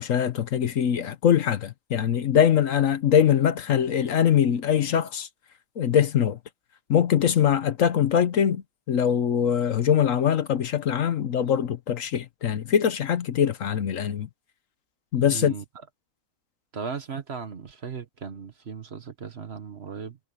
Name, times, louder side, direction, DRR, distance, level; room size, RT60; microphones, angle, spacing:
voice 1, 0.0-5.3 5.8-6.4 6.9-14.3 15.1-15.5, left 9 dB, 65° left, 1.2 m, -22 dB
voice 2, 15.3-15.6 16.7-20.2, right 6 dB, 45° right, 1.4 m, -36 dB
omnidirectional pair, 1.6 m